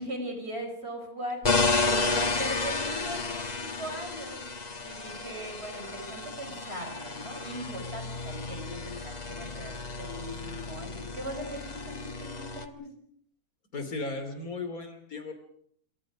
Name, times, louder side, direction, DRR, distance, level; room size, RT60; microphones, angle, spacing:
voice 1, 0.0-12.9, equal, 45° right, 5 dB, 5.4 m, -39 dB
sound 1, 1.4-12.7, left 3 dB, 30° left, 1.3 m, -32 dB
voice 2, 13.7-15.3, left 3 dB, 70° left, 8 dB, 3.4 m, -36 dB
28.0 x 23.5 x 5.1 m, 0.64 s
omnidirectional pair, 1.6 m